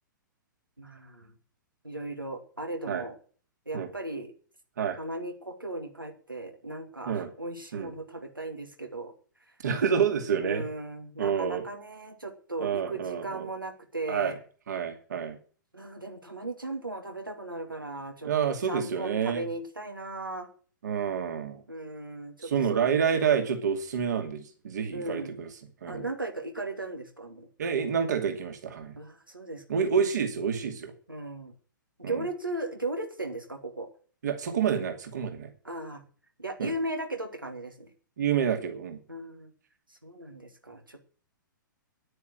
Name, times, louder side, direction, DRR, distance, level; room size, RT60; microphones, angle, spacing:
voice 1, 0.8-1.3 1.8-3.2 3.7-4.3 5.0-9.1 10.4-14.4 15.7-18.3 18.7-20.5 21.7-23.0 24.9-25.4 25.9-27.5 29.0-29.6 31.1-31.5 32.0-33.9 35.6-36.0 36.4-37.9 39.1-39.5 39.9-41.0, right 2 dB, 90° right, 4 dB, 2.5 m, -37 dB
voice 2, 9.6-10.6 11.2-11.6 12.6-13.5 14.1-14.3 14.7-15.4 18.2-19.4 20.8-21.6 22.5-25.5 25.8-26.0 27.6-28.9 29.7-30.9 32.0-32.2 34.2-35.5 36.6-36.7 38.2-39.0, right 7 dB, 60° right, 5 dB, 2.5 m, -28 dB
10.5 x 9.4 x 7.7 m, 0.41 s
figure-of-eight pair, 115°, 11 cm